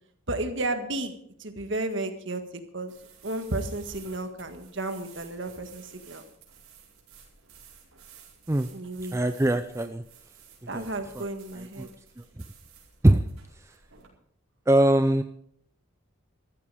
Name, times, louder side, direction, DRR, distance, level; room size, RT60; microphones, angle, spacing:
voice 1, 0.3-2.4 2.7-2.9 3.2-6.2 8.7-9.2 10.7-11.9, right 2 dB, 55° right, 7 dB, 1.7 m, -33 dB
sound 1, 2.9-14.1, right 7 dB, 80° right, 4.7 m, -53 dB
voice 2, 9.1-10.0 10.7-10.9 11.2-11.3 11.8-11.9 13.0-13.3 14.7-15.2, right 1 dB, 15° right, 8 dB, 0.4 m, -21 dB
14.0 x 14.0 x 5.0 m, 0.66 s
head